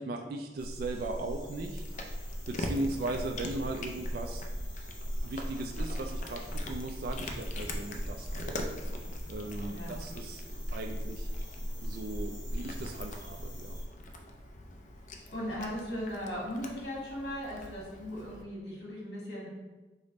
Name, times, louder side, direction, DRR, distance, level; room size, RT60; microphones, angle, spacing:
voice 1, 0.0-1.8 2.2-4.4 5.2-8.5 9.3-11.3 11.8-13.8, right 2 dB, 55° right, 3 dB, 0.3 m, -38 dB
sound 1, 0.6-13.8, equal, 25° left, 1.4 m, -39 dB
Cat, 1.3-18.4, left 1 dB, 45° left, 0.4 m, -44 dB
voice 2, 9.6-10.0 15.3-19.5, equal, 70° left, -4 dB, 1.5 m, -38 dB
5.0 x 2.0 x 3.9 m, 1.2 s
head